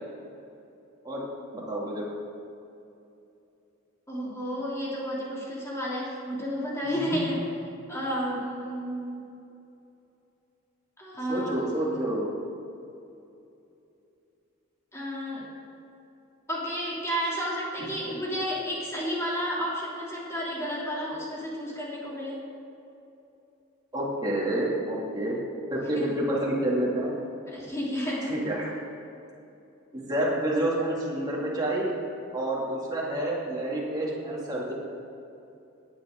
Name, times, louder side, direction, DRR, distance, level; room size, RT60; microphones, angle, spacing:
voice 1, 1.5-2.1 7.1-7.2 11.3-12.3 23.9-25.4 25.7-27.1 28.2-28.7 29.9-31.9 32.3-34.7, right 1 dB, 20° right, -5 dB, 2.6 m, -28 dB
voice 2, 4.1-7.4 7.9-9.2 11.0-12.1 14.9-15.5 16.5-22.4 25.9-26.1 27.5-28.3, equal, 15° left, -5 dB, 3.0 m, -32 dB
17.5 x 9.2 x 3.8 m, 2.8 s
head